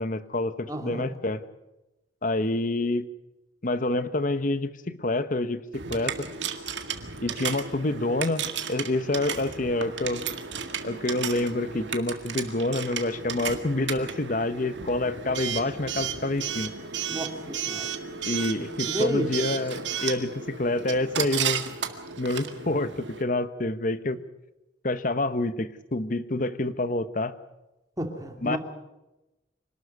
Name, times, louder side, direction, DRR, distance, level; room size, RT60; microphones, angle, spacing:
voice 1, 0.0-1.4 2.2-3.1 3.6-5.6 5.9-6.1 7.2-10.2 10.8-16.7 18.2-21.6 22.2-24.2 24.8-27.3 28.4-28.6, left 2 dB, 45° left, 13 dB, 1.0 m, -27 dB
voice 2, 0.7-1.1 17.1-17.9 18.9-19.3 28.0-28.6, equal, 20° right, 4 dB, 2.4 m, -31 dB
Coin (dropping) / Alarm, 5.7-23.2, right 7 dB, 70° right, 1.9 m, -34 dB
25.5 x 12.5 x 9.5 m, 0.98 s
head